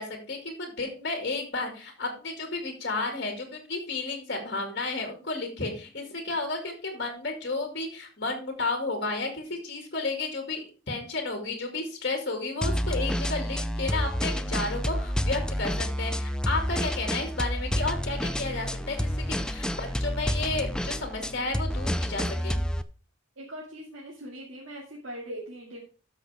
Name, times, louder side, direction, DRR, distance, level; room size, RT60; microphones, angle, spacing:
voice 1, 0.0-22.6, left 3 dB, 55° left, 3 dB, 2.2 m, -32 dB
sound 1, 12.6-22.8, equal, 5° left, 0.3 m, -29 dB
voice 2, 23.4-25.8, right 1 dB, 80° right, -4 dB, 2.2 m, -41 dB
13.0 x 6.1 x 3.5 m, 0.37 s
head